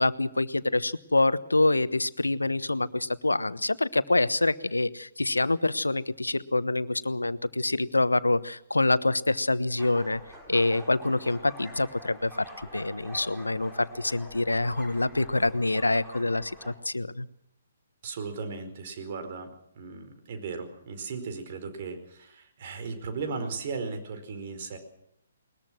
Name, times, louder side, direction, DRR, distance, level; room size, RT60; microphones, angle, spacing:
voice 1, 0.0-10.2 10.5-17.3, left 2 dB, 80° left, 16 dB, 1.1 m, -26 dB
sound 1, 9.8-16.7, equal, 5° right, 5.0 m, -46 dB
voice 2, 18.0-24.8, right 4 dB, 45° right, 7 dB, 4.8 m, -36 dB
21.0 x 21.0 x 6.2 m, 0.77 s
figure-of-eight pair, 130°, 0 cm